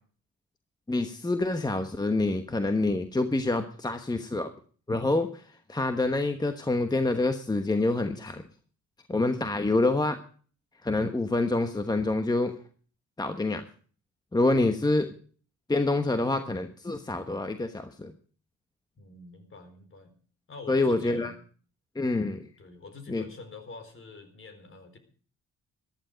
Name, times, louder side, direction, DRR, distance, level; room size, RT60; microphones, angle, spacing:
voice 1, 0.9-4.5 4.9-5.4 5.7-8.4 9.1-10.2 10.8-12.5 13.2-13.6 14.3-15.1 15.7-18.1 20.7-21.3 21.9-22.5 23.1-23.2, left 2 dB, 15° left, 8 dB, 1.1 m, -27 dB
voice 2, 19.0-20.1 20.5-21.4 22.6-25.0, left 3 dB, 45° left, 8 dB, 4.1 m, -46 dB
14.5 x 12.0 x 5.1 m, 0.43 s
cardioid pair, 90°, 30 cm